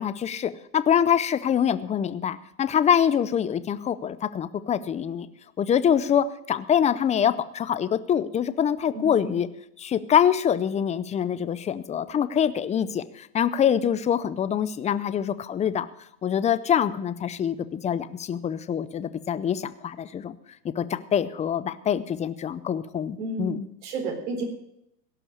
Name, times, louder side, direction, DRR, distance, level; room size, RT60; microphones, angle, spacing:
voice 1, 0.0-5.3 5.6-9.5 9.8-15.9 16.2-20.3 20.6-23.7, left 8 dB, 15° left, 14 dB, 0.5 m, -25 dB
voice 2, 8.9-9.3 23.2-23.5 23.8-24.5, right 3 dB, 65° right, 4 dB, 4.2 m, -31 dB
17.0 x 6.0 x 9.5 m, 0.78 s
supercardioid pair, 125°, 49 cm